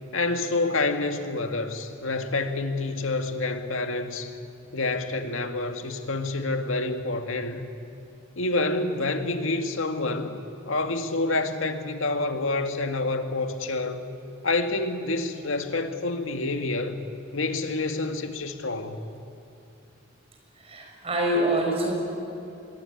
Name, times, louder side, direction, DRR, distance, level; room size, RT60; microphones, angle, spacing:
voice 1, 0.1-4.3 4.7-7.7 8.4-10.4 10.7-14.0 14.4-17.0 17.3-19.2, left 2 dB, 85° left, 6 dB, 2.1 m, -28 dB
voice 2, 20.6-21.9, right 1 dB, 30° right, 0 dB, 6.3 m, -25 dB
26.0 x 21.5 x 9.5 m, 2.8 s
head